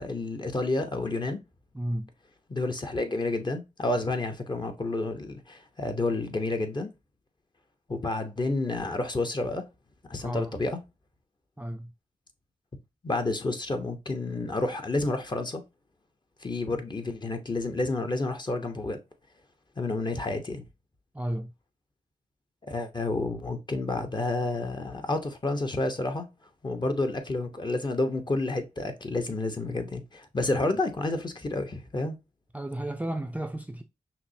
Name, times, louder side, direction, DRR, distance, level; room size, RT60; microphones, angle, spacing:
voice 1, 0.0-1.4 2.5-6.9 7.9-9.6 10.1-10.8 13.0-15.6 16.4-19.0 19.8-20.6 22.7-26.3 26.6-32.2, left 2 dB, 30° left, 0.9 m, -30 dB
voice 2, 1.7-2.1 10.2-10.5 11.6-11.9 21.1-21.5 32.5-33.8, right 1 dB, 10° right, 0.5 m, -33 dB
5.7 x 2.1 x 2.7 m
cardioid pair, 55°, 14 cm